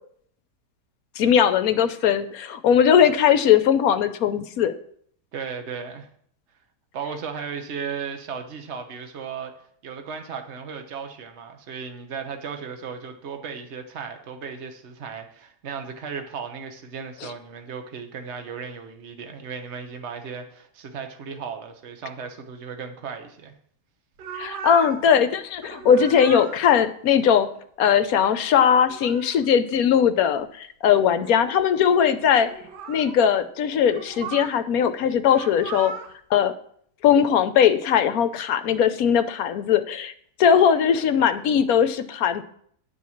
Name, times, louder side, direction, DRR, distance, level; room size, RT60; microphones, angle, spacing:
voice 1, 1.2-4.7 24.3-27.5 27.8-32.5 32.9-35.9 36.3-36.5 37.0-40.1 40.4-42.4, left 8 dB, 65° left, 11 dB, 1.1 m, -19 dB
voice 2, 5.3-6.1 6.9-9.5 9.8-23.5, right 6 dB, 45° right, 6 dB, 1.3 m, -35 dB
sound 1, 24.2-25.1 25.5-26.6 28.6-29.5 30.4-30.5 30.9-31.6 32.3-33.2 33.9-34.6 35.2-36.1, right 6 dB, 80° right, 1.4 m, -37 dB
11.0 x 4.7 x 7.1 m, 0.64 s
omnidirectional pair, 1.8 m